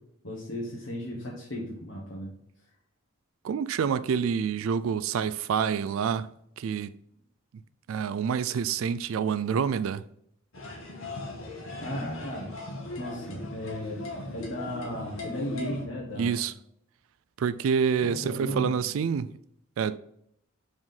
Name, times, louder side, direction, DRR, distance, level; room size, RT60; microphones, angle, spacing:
voice 1, 0.2-2.3 11.8-12.6 13.0-16.4 18.0-18.8, left 1 dB, 65° left, 1.5 m, -35 dB
voice 2, 3.4-6.3 6.6-6.9 7.9-10.0 16.2-16.5 17.4-19.3 19.8-20.0, right 7 dB, 80° right, 0.3 m, -27 dB
sound 1, 10.5-15.8, left 2 dB, 85° left, 1.9 m, -39 dB
5.6 x 5.0 x 5.5 m
head